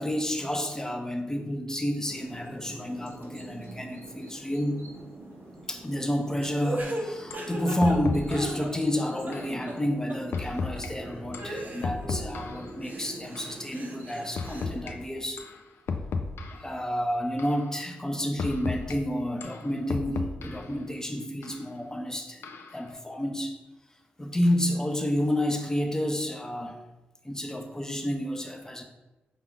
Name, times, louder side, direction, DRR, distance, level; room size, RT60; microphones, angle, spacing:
voice 1, 0.0-4.8 5.7-15.5 16.5-23.6 24.2-26.8 27.2-28.8, equal, 15° left, 4 dB, 0.6 m, -30 dB
sound 1, 2.0-15.0, right 1 dB, 85° right, 0.9 m, -45 dB
sound 2, 6.4-9.0 9.3-9.8 10.1-10.2 10.8-10.9 11.4-12.4 12.8-14.7, right 1 dB, 45° right, 0.7 m, -37 dB
sound 3, 6.8-6.9 7.3-7.5 7.8-8.6 9.3-9.5 10.3-10.9 11.3-12.7 13.4-13.5 14.4-14.9 15.4-15.6 15.9-16.7 17.4-17.6 18.4-19.0 19.4-20.7 21.4-21.6 22.4-22.8, left 4 dB, 70° left, 0.4 m, -34 dB
5.1 x 2.4 x 3.6 m, 1.1 s
cardioid pair, 55°, 4 cm